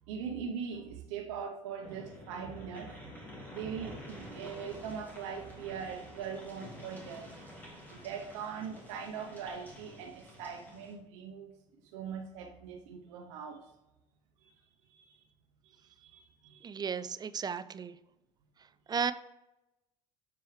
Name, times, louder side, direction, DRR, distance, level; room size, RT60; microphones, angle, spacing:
voice 1, 0.1-2.9 3.5-7.3 7.9-11.5 11.9-13.7 14.4-14.5 14.9-15.2 15.6-16.7, right 7 dB, 85° right, 3 dB, 0.7 m, -41 dB
sound 1, 1.8-10.9, left 1 dB, 10° left, 2.3 m, -49 dB
voice 2, 16.6-18.0 18.9-19.1, right 6 dB, 25° right, 14 dB, 0.4 m, -34 dB
7.0 x 4.6 x 3.1 m, 0.93 s
supercardioid pair, 85°, 15 cm